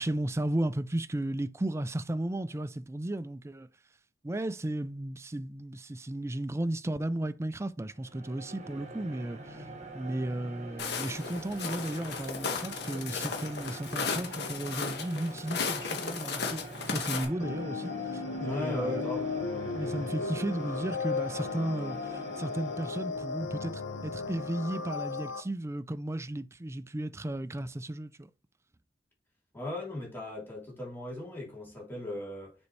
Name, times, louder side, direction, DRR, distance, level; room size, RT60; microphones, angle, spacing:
voice 1, 0.0-3.7 4.2-9.7 9.9-16.6 16.9-19.0 19.7-28.3, right 1 dB, 15° right, 0.4 m, -34 dB
sound 1, 7.9-23.2, right 2 dB, 40° right, 1.4 m, -45 dB
Walk footsteps, 10.8-17.2, left 5 dB, 65° left, 1.7 m, -35 dB
sound 2, 17.4-25.4, left 4 dB, 80° left, 0.9 m, -35 dB
voice 2, 18.4-19.3 29.5-32.5, left 1 dB, 10° left, 3.1 m, -37 dB
7.0 x 5.3 x 3.3 m
head